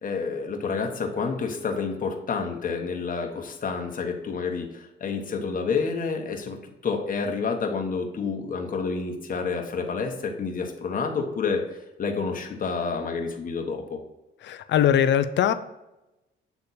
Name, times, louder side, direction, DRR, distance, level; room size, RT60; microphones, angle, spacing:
voice 1, 0.0-14.0, left 5 dB, 45° left, 2 dB, 1.3 m, -29 dB
voice 2, 14.4-15.5, left 10 dB, 65° left, 11 dB, 0.5 m, -21 dB
8.1 x 3.4 x 4.2 m, 0.98 s
cardioid pair, 90°, 20 cm